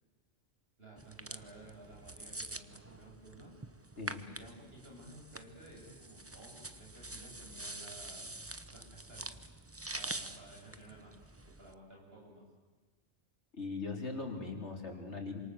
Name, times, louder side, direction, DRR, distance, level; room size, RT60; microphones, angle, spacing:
voice 1, 0.8-3.5 4.3-8.2 8.7-9.4 9.9-11.1 11.4-12.4, right 2 dB, 55° right, -1 dB, 7.7 m, -54 dB
sound 1, 1.0-11.7, right 2 dB, 15° right, 0.9 m, -46 dB
voice 2, 13.5-15.4, left 3 dB, 70° left, 2 dB, 4.3 m, -40 dB
28.0 x 26.0 x 8.0 m, 1.3 s
omnidirectional pair, 1.2 m